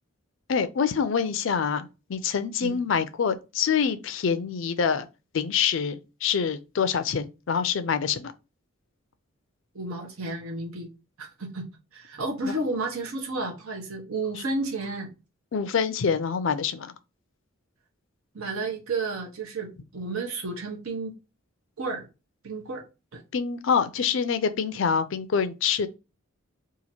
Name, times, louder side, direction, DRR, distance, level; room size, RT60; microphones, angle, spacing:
voice 1, 0.5-5.1 5.3-8.3 12.4-12.5 15.5-16.9 23.3-25.9, left 6 dB, 60° left, 0.4 m, -26 dB
voice 2, 9.7-10.9 11.2-11.7 11.9-15.1 18.3-21.2 21.8-22.1 22.4-22.8 23.1-23.2, right 3 dB, 75° right, 0.9 m, -32 dB
2.8 x 2.5 x 4.2 m
head